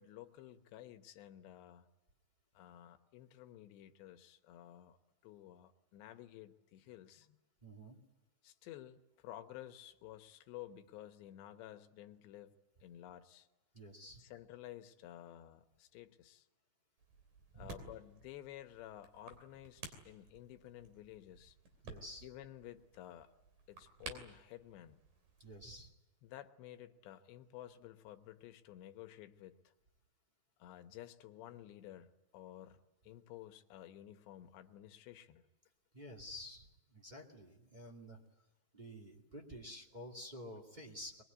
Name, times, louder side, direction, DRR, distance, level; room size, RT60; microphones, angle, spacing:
voice 1, 0.0-1.9 2.5-5.0 5.2-7.4 8.4-12.6 12.8-13.5 14.2-16.5 17.5-21.6 22.2-23.3 23.7-25.0 26.2-29.7 30.6-32.8 33.0-35.4, left 13 dB, 80° left, 8 dB, 3.2 m, -53 dB
voice 2, 7.6-8.0 13.7-14.2 17.5-17.8 21.8-22.3 25.4-25.9 35.9-38.2 38.7-41.2, equal, 20° right, -1 dB, 1.4 m, -50 dB
sound 1, 17.0-25.7, right 4 dB, 50° right, 4.5 m, -55 dB
22.5 x 22.0 x 9.5 m, 1.0 s
omnidirectional pair, 5.1 m